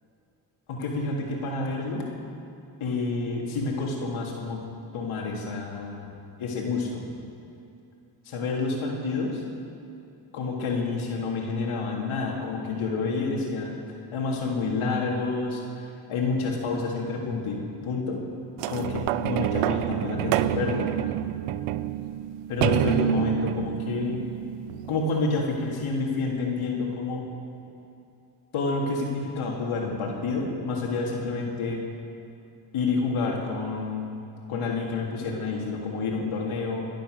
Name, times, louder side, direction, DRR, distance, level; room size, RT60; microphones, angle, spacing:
voice 1, 0.7-2.1 2.8-4.6 4.9-6.1 6.4-7.1 8.3-9.4 10.3-13.7 14.1-18.2 18.7-20.9 22.5-24.2 24.9-27.2 28.5-31.8 32.7-34.2 34.5-36.9, left 3 dB, 75° left, -1 dB, 3.6 m, -29 dB
sound 1, 18.6-25.3 26.0-26.1, right 13 dB, 85° right, 0.7 m, -28 dB
23.5 x 9.0 x 6.7 m, 2.6 s
supercardioid pair, 65°, 50 cm